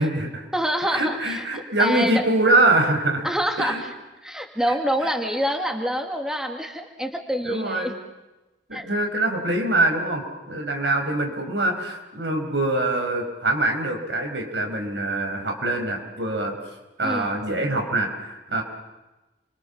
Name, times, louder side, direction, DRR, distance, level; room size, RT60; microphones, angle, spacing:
voice 1, 0.0-0.5 0.9-3.3 3.6-3.8 4.7-4.8 5.0-5.1 7.4-7.9 8.7-16.5 17.0-18.6, right 2 dB, 85° right, 4 dB, 5.4 m, -24 dB
voice 2, 0.5-2.2 3.2-3.9 4.2-7.9 8.7-8.9 17.0-17.3, equal, 5° right, 4 dB, 2.3 m, -26 dB
29.5 x 24.0 x 7.4 m, 1.1 s
head